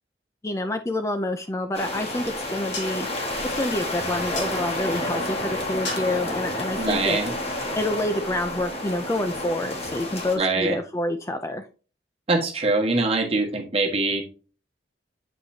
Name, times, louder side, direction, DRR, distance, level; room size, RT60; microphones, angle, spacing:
voice 1, 0.4-3.1 3.4-7.2 7.8-11.7, left 1 dB, 15° left, 7 dB, 0.4 m, -28 dB
sound 1, 1.5-8.0, left 3 dB, 75° left, 3.3 m, -41 dB
sound 2, 1.7-10.4, left 1 dB, 35° left, 1.6 m, -30 dB
voice 2, 6.8-7.3 10.4-10.8 12.3-14.2, right 3 dB, 35° right, 2 dB, 1.4 m, -23 dB
7.4 x 5.4 x 2.7 m, 0.35 s
head